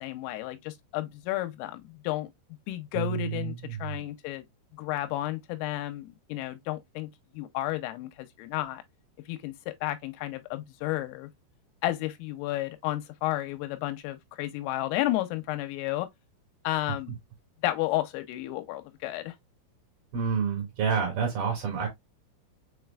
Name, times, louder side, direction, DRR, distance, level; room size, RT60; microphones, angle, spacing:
voice 1, 0.0-2.3 2.7-3.5 3.8-4.4 4.8-7.1 7.3-8.8 9.3-11.3 11.8-16.1 16.6-17.1 17.6-19.4, left 16 dB, 85° left, 3.2 m, -32 dB
voice 2, 2.9-4.0 20.1-21.9, right 6 dB, 60° right, 3.2 m, -29 dB
7.1 x 3.2 x 2.3 m
omnidirectional pair, 5.9 m